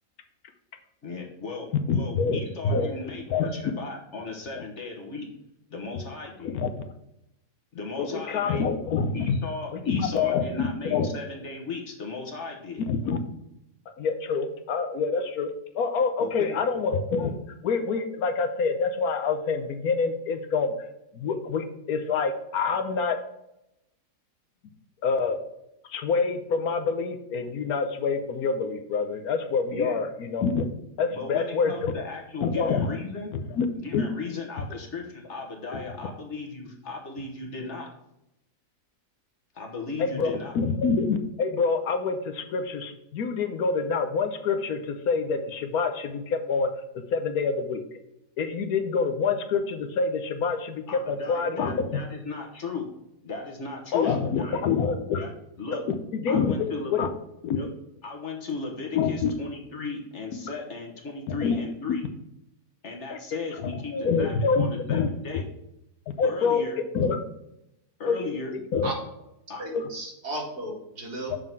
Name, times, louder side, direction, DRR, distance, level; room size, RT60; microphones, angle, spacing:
voice 1, 1.0-5.3 5.7-6.6 7.7-8.7 9.1-12.8 16.2-16.6 29.7-30.0 31.1-33.3 33.7-37.9 39.5-40.5 50.9-52.9 53.2-54.7 55.2-55.3 55.6-55.8 56.3-56.9 57.5-57.7 58.0-62.0 62.8-65.4 66.2-66.8 68.0-68.5 69.5-69.6, left 4 dB, 45° left, 1 dB, 1.5 m, -36 dB
voice 2, 1.9-2.9 3.3-3.5 4.5-4.6 6.4-6.7 8.0-9.4 9.7-11.1 12.9-13.2 14.0-17.4 17.6-20.7 21.1-23.2 25.0-25.4 25.9-30.6 31.0-31.9 32.4-32.9 33.3-33.7 33.9-34.0 35.7-35.8 40.0-46.7 47.1-47.8 48.4-51.9 53.9-55.2 56.1-57.1 57.4-57.6 58.9-59.3 61.3-61.6 63.1-63.2 63.6-65.1 66.2-66.7 66.9-67.2 68.0-68.9 69.7-69.9 71.3-71.4, left 5 dB, 70° left, 7 dB, 1.2 m, -26 dB
voice 3, 69.6-71.3, right 1 dB, 75° right, -2 dB, 2.7 m, -35 dB
6.7 x 3.8 x 6.0 m, 0.85 s
omnidirectional pair, 1.7 m